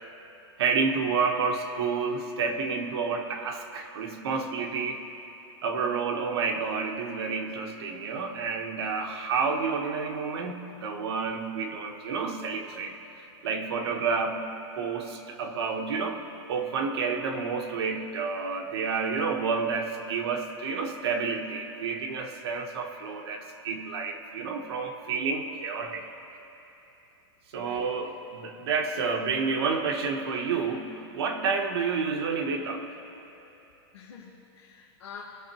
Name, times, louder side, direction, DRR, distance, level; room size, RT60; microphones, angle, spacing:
voice 1, 0.6-5.0 5.6-13.0 13.4-14.5 14.7-26.0 27.5-32.9, right 5 dB, 65° right, 3 dB, 1.1 m, -30 dB
voice 2, 27.5-28.1 33.9-35.2, left 7 dB, 85° left, -2 dB, 1.2 m, -46 dB
18.5 x 6.4 x 3.0 m, 3.0 s
supercardioid pair, 170°, 14 cm